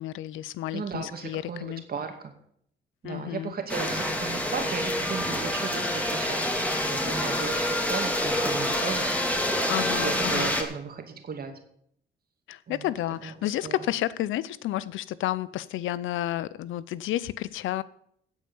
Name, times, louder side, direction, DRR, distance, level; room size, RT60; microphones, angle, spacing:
voice 1, 0.0-1.8 3.0-3.5 9.7-10.5 12.5-17.8, left 14 dB, 85° left, 0.6 m, -31 dB
voice 2, 0.7-2.3 3.0-9.1 10.0-11.5 12.7-12.9 13.2-13.8, right 5 dB, 50° right, 2.4 m, -36 dB
sound 1, 3.7-10.6, left 1 dB, 5° left, 2.3 m, -27 dB
16.0 x 5.5 x 7.0 m
cardioid pair, 90°, 20 cm